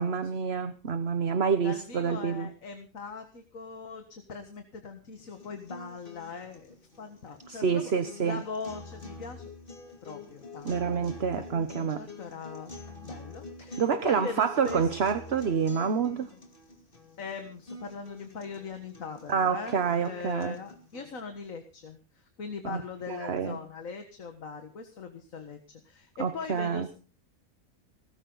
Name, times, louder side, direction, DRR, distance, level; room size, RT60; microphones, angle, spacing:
voice 1, 0.0-2.5 7.5-8.4 10.6-12.0 13.8-16.3 19.3-20.6 22.6-22.8 23.1-23.6 26.2-26.9, right 6 dB, 50° right, 1.2 m, -28 dB
voice 2, 1.6-7.9 8.2-9.5 10.0-12.7 13.0-14.9 17.2-26.9, left 4 dB, 70° left, 2.0 m, -41 dB
sound 1, 5.2-21.2, left 2 dB, 35° left, 2.8 m, -47 dB
18.5 x 15.0 x 3.9 m
omnidirectional pair, 1.5 m